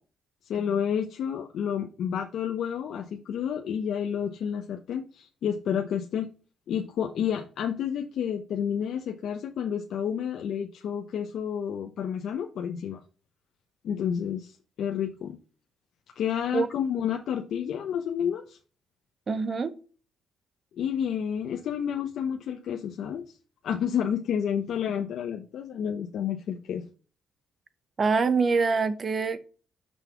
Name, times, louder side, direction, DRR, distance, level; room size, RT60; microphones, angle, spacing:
voice 1, 0.4-6.3 6.7-13.0 13.8-15.4 16.2-18.6 20.8-23.2 23.6-26.8, left 8 dB, 70° left, 0.9 m, -30 dB
voice 2, 19.3-19.8 28.0-29.4, right 4 dB, 40° right, 1.0 m, -24 dB
6.2 x 5.4 x 7.0 m
cardioid pair, 90°, 0 cm